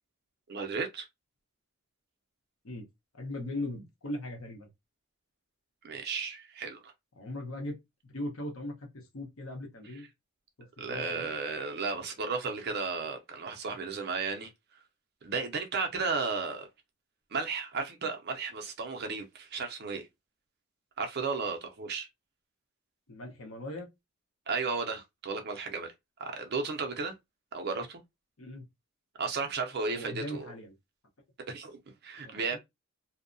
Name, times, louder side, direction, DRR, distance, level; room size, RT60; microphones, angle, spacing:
voice 1, 0.5-1.1 5.8-6.9 10.8-14.5 15.2-16.7 17.3-20.1 21.0-22.1 24.5-25.9 26.2-27.1 27.5-28.0 29.2-30.5 31.5-32.6, right 4 dB, 45° right, 0.5 m, -34 dB
voice 2, 3.1-4.7 7.1-10.1 10.6-11.3 23.1-23.9 28.4-28.6 29.9-30.7 32.2-32.6, left 1 dB, 70° left, 0.9 m, -39 dB
2.7 x 2.1 x 2.5 m
head